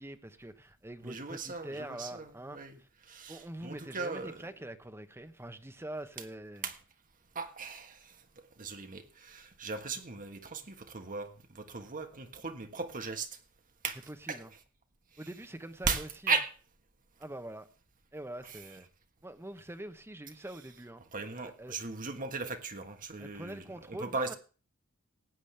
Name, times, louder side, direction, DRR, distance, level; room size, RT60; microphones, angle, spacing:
voice 1, 0.0-2.9 3.3-6.7 14.1-14.5 15.2-16.4 17.2-17.7 18.1-18.9 19.2-21.0 21.4-21.8 23.2-24.3, right 1 dB, 10° right, 0.9 m, -44 dB
voice 2, 1.0-4.4 6.6-6.8 7.3-13.4 13.8-14.0 14.3-14.4 15.9-16.5 18.4-18.6 21.1-24.3, right 4 dB, 40° right, 1.5 m, -37 dB
19.0 x 8.3 x 3.4 m
head